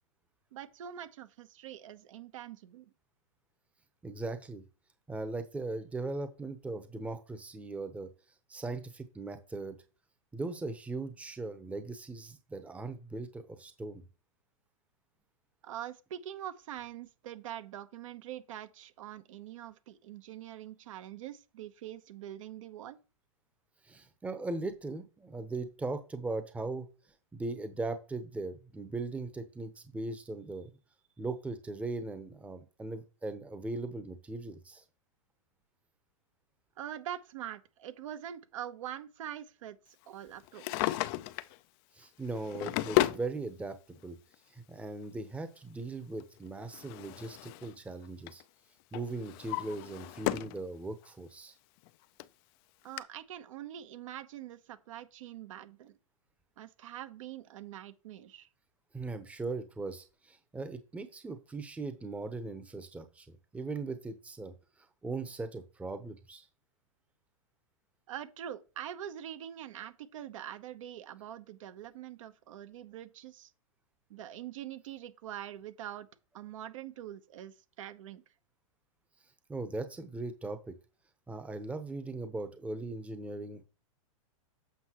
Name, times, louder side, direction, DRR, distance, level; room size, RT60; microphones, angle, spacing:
voice 1, 0.5-2.9 15.6-23.0 36.8-41.0 52.8-55.9 56.6-58.5 68.1-73.5 74.1-76.1 76.3-78.2, right 11 dB, 65° right, 0.9 m, -44 dB
voice 2, 4.0-4.6 5.1-8.1 8.5-9.8 10.3-14.0 23.8-26.9 27.3-30.7 31.2-34.8 41.9-44.2 44.5-48.4 48.9-51.5 58.9-64.5 65.0-66.5 79.5-80.8 81.3-83.6, right 3 dB, 5° right, 0.8 m, -39 dB
Drawer open or close, 40.4-41.6 42.3-43.3 44.3-44.4 46.2-47.8 48.0-48.4 48.9-50.6 51.0-51.1 51.9-52.0 52.2-52.3 53.0-53.1, left 16 dB, 40° left, 0.5 m, -33 dB
8.0 x 5.5 x 3.0 m
hypercardioid pair, 125°, 18 cm